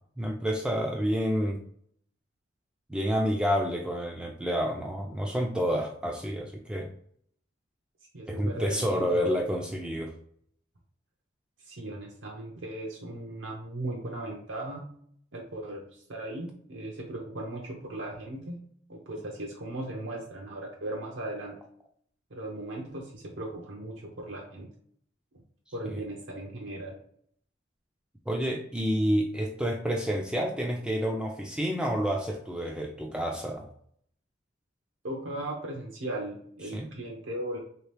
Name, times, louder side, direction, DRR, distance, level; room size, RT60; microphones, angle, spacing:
voice 1, 0.2-1.6 2.9-6.9 8.3-10.1 25.9-26.0 28.3-33.7 36.7-36.9, equal, 5° right, 1 dB, 0.3 m, -29 dB
voice 2, 8.1-9.4 11.6-14.9 15.3-18.6 18.9-21.6 22.3-24.7 25.7-27.0 35.0-37.6, right 1 dB, 80° right, -1 dB, 0.8 m, -37 dB
3.3 x 2.9 x 3.3 m, 0.63 s
head